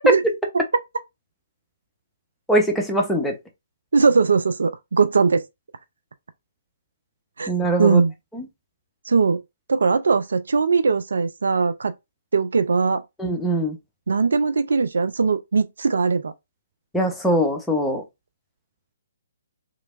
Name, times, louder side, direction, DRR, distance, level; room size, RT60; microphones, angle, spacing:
voice 1, 2.5-3.4 7.5-8.0 8.3-8.4 13.2-13.8 16.9-18.0, right 1 dB, 5° left, 0.8 m, -22 dB
voice 2, 3.9-5.4 7.4-7.5 7.8-8.1 9.1-9.4 9.7-11.9 12.3-13.0 14.1-16.3, right 4 dB, 65° right, 0.4 m, -20 dB
3.2 x 2.9 x 2.5 m
figure-of-eight pair, 130°, 0 cm